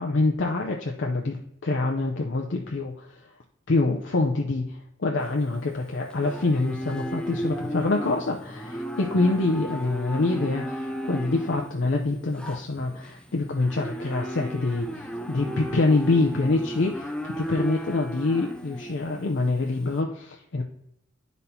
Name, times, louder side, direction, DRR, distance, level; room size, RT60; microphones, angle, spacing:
voice 1, 0.0-3.3 3.7-20.6, left 2 dB, 65° left, 1 dB, 0.6 m, -26 dB
Livestock farm animals working animals, 5.2-19.9, equal, 5° left, 0.4 m, -35 dB
12.0 x 4.1 x 2.8 m, 0.78 s
head